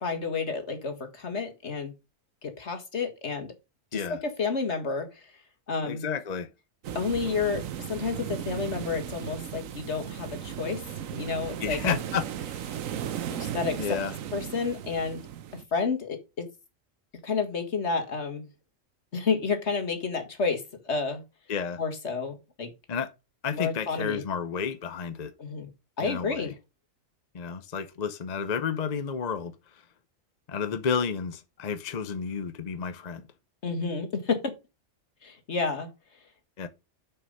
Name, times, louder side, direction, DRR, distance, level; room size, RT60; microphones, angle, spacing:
voice 1, 0.0-1.9 2.4-3.5 3.9-5.1 5.7-6.0 6.9-10.8 11.1-12.0 13.3-13.9 14.3-15.2 15.5-16.5 17.2-18.5 19.1-21.2 21.8-22.7 23.5-24.2 25.4-25.7 26.0-26.5 33.6-34.5 35.2-35.9, left 5 dB, 55° left, 2.0 m, -30 dB
voice 2, 5.8-6.5 11.6-12.2 12.5-12.7 13.8-14.1 21.5-21.8 22.9-23.1 23.4-25.3 26.0-26.5 27.3-29.6 30.5-33.2 36.6-36.7, left 6 dB, 40° left, 0.6 m, -31 dB
sound 1, 6.8-15.6, right 9 dB, 80° right, 1.2 m, -36 dB
6.9 x 6.4 x 5.3 m
omnidirectional pair, 1.4 m